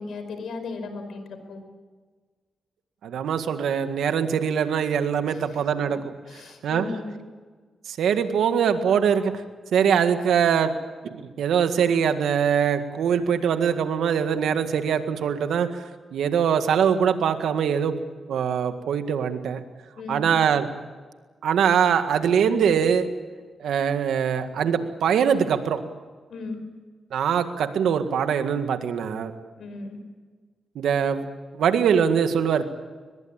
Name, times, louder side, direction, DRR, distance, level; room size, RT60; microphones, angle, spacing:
voice 1, 0.0-1.6 5.3-5.4 6.3-7.2 20.0-20.3 26.3-26.6 29.6-30.0, left 3 dB, 80° left, 8 dB, 5.2 m, -36 dB
voice 2, 3.0-6.0 6.6-6.9 7.9-9.3 9.7-10.7 11.0-15.8 16.1-17.9 18.3-19.6 20.1-20.7 21.4-23.1 23.6-25.8 27.1-29.3 30.7-31.2 31.6-32.7, right 7 dB, 90° right, 8 dB, 1.8 m, -22 dB
22.5 x 21.5 x 8.9 m, 1.4 s
cardioid pair, 60°, 0 cm